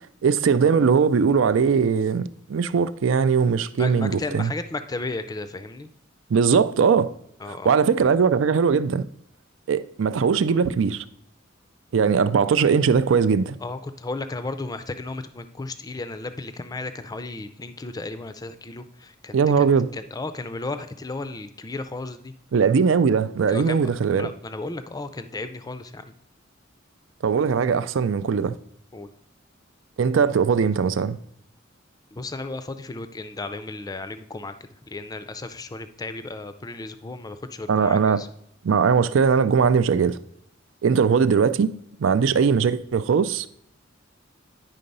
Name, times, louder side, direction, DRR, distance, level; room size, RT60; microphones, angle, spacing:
voice 1, 0.2-4.5 6.3-7.1 7.5-9.0 9.7-11.0 11.9-13.6 19.3-19.9 22.5-24.3 27.2-28.6 30.0-31.2 37.7-38.2 38.6-40.2 40.8-41.7 42.0-43.5, right 6 dB, 70° right, 0.4 m, -20 dB
voice 2, 3.7-5.9 7.4-7.7 8.0-8.1 13.6-22.3 23.5-26.1 28.9-29.1 32.1-38.3, left 2 dB, 20° left, 0.4 m, -34 dB
9.9 x 3.8 x 5.4 m
head